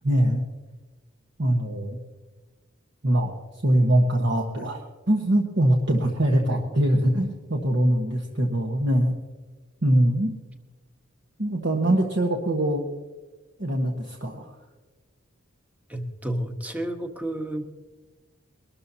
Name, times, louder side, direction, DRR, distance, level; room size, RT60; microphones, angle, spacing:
voice 1, 0.0-0.4 1.4-2.0 3.0-3.3 3.6-4.8 5.1-9.1 9.8-10.3 11.4-12.8 13.6-14.5, right 1 dB, 55° right, 0 dB, 1.3 m, -22 dB
voice 2, 6.3-6.8 15.9-17.7, right 1 dB, 5° right, 5 dB, 1.1 m, -31 dB
22.5 x 13.0 x 2.8 m, 1.3 s
head